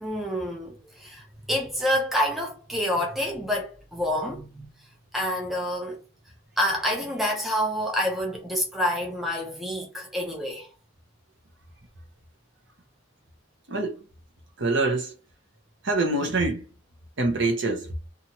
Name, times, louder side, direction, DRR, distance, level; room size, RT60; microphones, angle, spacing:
voice 1, 0.0-4.7 5.1-6.0 6.6-10.7, equal, ahead, 0.6 m, -28 dB
voice 2, 14.6-15.1 15.8-16.7 17.2-17.9, right 2 dB, 55° right, 0.7 m, -25 dB
2.8 x 2.4 x 2.8 m
head